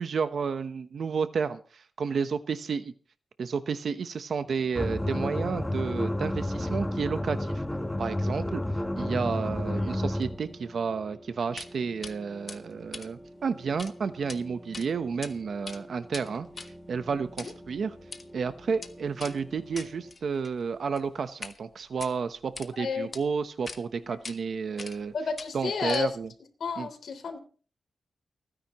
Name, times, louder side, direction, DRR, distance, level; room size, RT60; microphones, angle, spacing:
voice 1, 0.0-2.9 3.4-7.6 8.0-8.6 9.0-18.0 18.3-25.1 25.5-26.3 26.8-26.9, right 5 dB, 65° right, 11 dB, 0.9 m, -31 dB
sound 1, 4.3-20.1, equal, 10° right, 3.0 m, -49 dB
sound 2, 4.8-10.4, left 1 dB, 10° left, 1.2 m, -30 dB
sound 3, 11.6-11.7 12.0-12.1 12.5-13.9 14.2-14.4 14.7-15.3 15.6-21.6 21.9-22.7 23.1-23.2 23.7-23.8 24.2-24.4 24.8-25.1 25.4-26.3, left 4 dB, 40° left, 1.4 m, -43 dB
voice 2, 22.8-23.1 24.0-24.2 25.1-26.2 26.6-27.4, left 5 dB, 75° left, 5 dB, 3.2 m, -31 dB
29.5 x 10.0 x 3.0 m, 0.39 s
wide cardioid pair, 110°, 0 cm